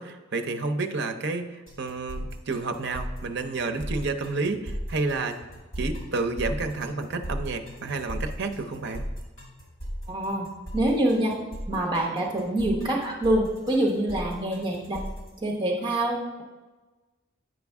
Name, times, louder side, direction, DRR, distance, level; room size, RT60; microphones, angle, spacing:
voice 1, 0.0-5.4 5.8-9.1, right 3 dB, 55° right, 6 dB, 0.6 m, -30 dB
sound 1, 1.7-15.3, equal, 70° left, 2.4 m, -36 dB
voice 2, 10.1-10.5 10.7-11.3 11.7-15.0 15.4-16.4, right 1 dB, 20° right, -2 dB, 1.1 m, -25 dB
9.0 x 5.1 x 3.5 m, 1.3 s
head